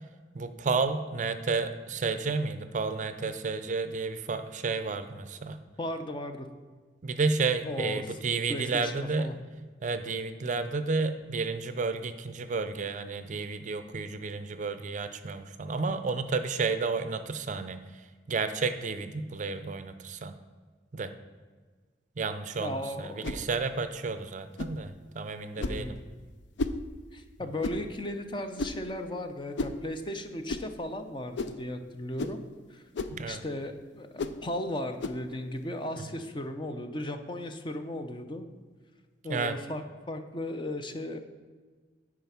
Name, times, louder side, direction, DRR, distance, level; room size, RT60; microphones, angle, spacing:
voice 1, 0.3-5.6 7.0-9.4 9.8-17.8 18.3-20.3 20.9-21.1 22.2-26.0 33.1-33.4 36.0-36.1 39.3-39.6, right 4 dB, 40° right, 10 dB, 0.5 m, -31 dB
voice 2, 5.8-6.5 7.6-8.0 8.5-9.4 22.6-23.4 25.6-26.0 27.1-32.4 32.7-32.8 33.3-38.4 39.2-41.2, left 1 dB, 25° left, 7 dB, 0.6 m, -36 dB
sound 1, 23.2-23.4 24.6-24.8 25.6-25.8 26.6-26.8 27.6-27.8 28.6-28.8 29.6-29.8 30.5-30.7 31.4-31.6 32.2-32.4 32.9-33.2 34.2-34.4 35.0-35.2, left 2 dB, 70° left, 0.5 m, -33 dB
9.3 x 4.9 x 5.6 m, 1.5 s
head